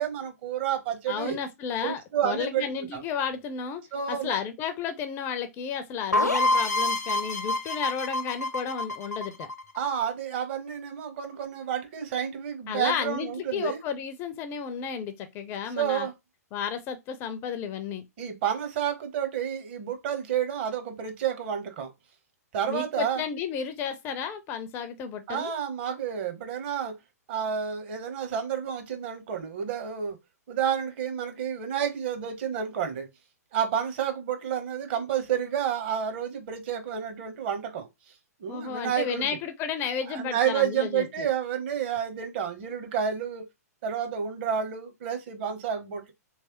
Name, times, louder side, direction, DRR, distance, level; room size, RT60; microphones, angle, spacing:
voice 1, 0.0-1.4 1.8-3.0 3.9-4.4 9.7-13.8 15.8-16.1 18.2-21.9 22.5-23.2 25.3-26.9 27.3-30.2 30.5-33.1 33.5-37.9 38.4-39.3 40.1-43.4 43.8-46.1, right 8 dB, 40° right, 0.9 m, -30 dB
voice 2, 1.1-3.8 4.1-9.5 12.7-16.1 16.5-18.0 22.7-25.5 38.5-41.3, left 7 dB, 25° left, 0.4 m, -32 dB
sound 1, 6.1-9.9, left 2 dB, 85° left, 0.8 m, -27 dB
3.2 x 3.1 x 2.9 m
figure-of-eight pair, 115°, 9 cm